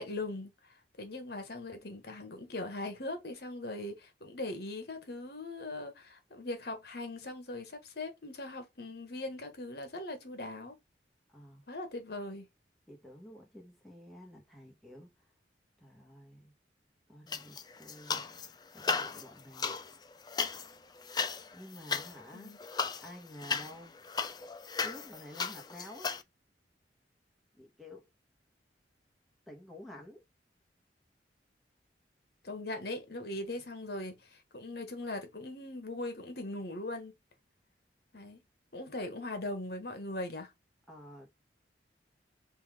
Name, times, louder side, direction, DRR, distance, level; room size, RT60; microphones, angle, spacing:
voice 1, 0.0-10.8 11.7-12.4 22.3-22.6 32.4-37.1 38.1-38.4 38.7-40.5, left 2 dB, 60° left, 1.3 m, -40 dB
voice 2, 11.3-11.6 12.9-15.1 15.8-16.5 17.1-18.3 18.7-19.7 21.5-22.6 23.0-24.0 24.8-26.2 27.5-28.1 29.5-30.2 40.9-41.3, left 1 dB, ahead, 1.3 m, -50 dB
sound 1, 17.3-18.5 18.8-26.2, left 5 dB, 25° left, 0.4 m, -36 dB
5.5 x 2.6 x 3.6 m
head